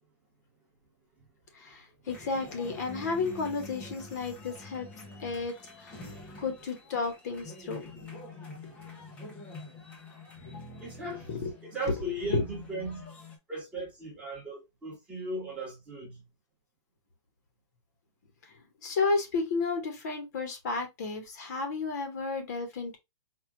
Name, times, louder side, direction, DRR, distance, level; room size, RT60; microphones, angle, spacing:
voice 1, 1.5-4.9 5.2-6.1 6.4-7.9 10.5-10.7 11.3-11.5 12.3-12.4 18.8-23.0, left 4 dB, 35° left, 0.9 m, -32 dB
sound 1, 2.1-13.4, left 2 dB, 10° left, 0.5 m, -46 dB
voice 2, 10.8-11.3 11.6-13.1 13.5-16.2, right 1 dB, 10° right, 1.0 m, -37 dB
4.5 x 2.3 x 3.4 m
hypercardioid pair, 180°, 15 cm